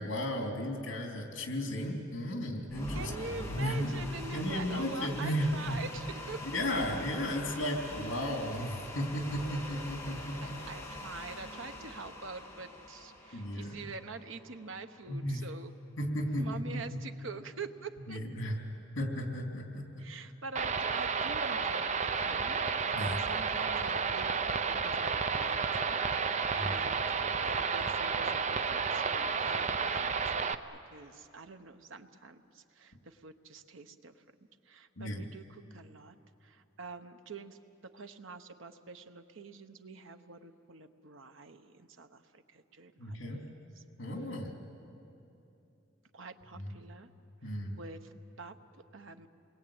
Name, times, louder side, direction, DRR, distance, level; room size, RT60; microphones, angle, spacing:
voice 1, 0.0-3.1 3.4-4.0 4.3-5.8 6.4-10.6 13.3-13.9 15.1-15.5 16.0-17.0 18.1-18.6 18.9-19.9 22.9-23.2 26.6-26.8 35.0-35.2 43.0-43.4 44.0-44.5 46.5-46.7 47.4-47.8, equal, 70° left, 2 dB, 3.3 m, -34 dB
sound 1, 2.7-14.8, left 1 dB, 15° left, 2.4 m, -44 dB
voice 2, 2.9-6.6 10.4-15.7 16.4-18.2 20.0-22.6 23.0-27.1 27.4-30.6 30.9-34.1 34.7-36.1 36.4-43.3 46.1-47.1 47.4-48.6 48.9-49.3, right 4 dB, 80° right, 8 dB, 1.1 m, -46 dB
sound 2, 20.5-30.5, right 5 dB, 35° right, 0.6 m, -31 dB
29.0 x 21.0 x 8.9 m, 2.8 s
head